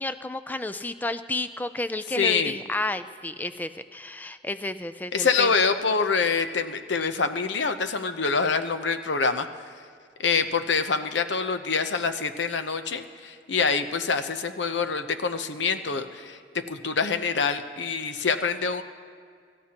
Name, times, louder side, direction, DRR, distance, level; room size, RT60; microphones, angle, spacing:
voice 1, 0.0-5.5, left 2 dB, 10° left, 11 dB, 0.3 m, -31 dB
voice 2, 2.2-2.5 5.1-9.5 10.2-18.8, left 5 dB, 85° left, 8 dB, 0.8 m, -25 dB
26.0 x 13.0 x 2.9 m, 2.1 s
head